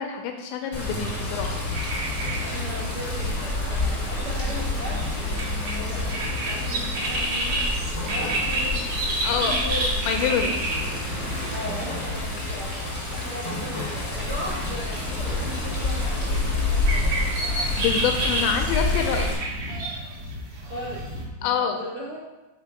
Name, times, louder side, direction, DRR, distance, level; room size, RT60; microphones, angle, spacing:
voice 1, 0.0-1.6 9.2-9.5 10.1-10.5 17.8-19.3 21.4-21.8, left 7 dB, 85° left, 4 dB, 2.7 m, -26 dB
Water, 0.7-19.3, left 2 dB, 35° left, 1.1 m, -28 dB
sound 1, 1.7-21.2, right 1 dB, 55° right, 1.9 m, -31 dB
voice 2, 2.4-7.6 8.0-8.9 9.3-9.9 10.2-10.6 11.5-17.5 20.6-21.0 21.4-22.2, equal, 75° right, -9 dB, 1.2 m, -38 dB
sound 2, 8.8-13.6, equal, 20° right, 1.4 m, -39 dB
6.6 x 4.7 x 5.1 m, 1.1 s
omnidirectional pair, 5.5 m